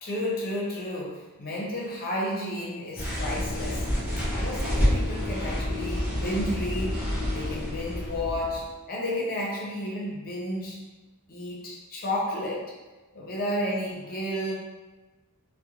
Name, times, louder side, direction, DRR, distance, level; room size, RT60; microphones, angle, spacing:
voice 1, 0.0-3.8 4.3-7.0 7.3-10.8 11.3-12.6 13.1-14.5, left 1 dB, 45° left, -3 dB, 0.6 m, -32 dB
sound 1, 3.0-8.7, left 1 dB, 10° right, 0.6 m, -28 dB
2.5 x 2.1 x 2.8 m, 1.2 s
head